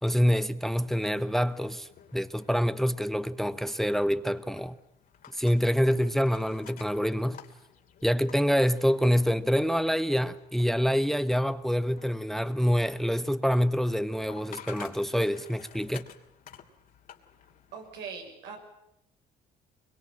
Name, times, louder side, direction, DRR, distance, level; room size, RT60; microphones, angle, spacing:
voice 1, 0.0-4.8 5.3-7.4 8.0-16.1, equal, ahead, 0.9 m, -26 dB
sound 1, 1.1-18.0, left 9 dB, 55° left, 2.9 m, -53 dB
voice 2, 17.7-18.6, right 6 dB, 90° right, 6.8 m, -41 dB
23.5 x 22.5 x 8.8 m
cardioid pair, 110°, 17 cm